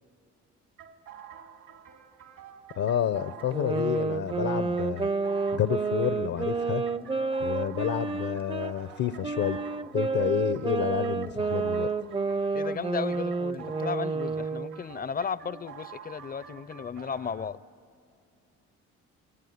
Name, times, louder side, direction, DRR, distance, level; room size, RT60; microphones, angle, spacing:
sound 1, 0.8-17.5, right 8 dB, 75° right, 2.1 m, -48 dB
voice 1, 2.8-5.1 5.5-6.8 7.4-9.6 9.9-11.9, left 10 dB, 70° left, 12 dB, 0.7 m, -29 dB
sound 2, 3.5-8.7 9.2-14.8, right 4 dB, 20° right, 0.5 m, -30 dB
voice 2, 12.5-17.6, left 6 dB, 30° left, 19 dB, 0.5 m, -35 dB
24.0 x 20.0 x 9.4 m, 2.3 s
cardioid pair, 90°, 30 cm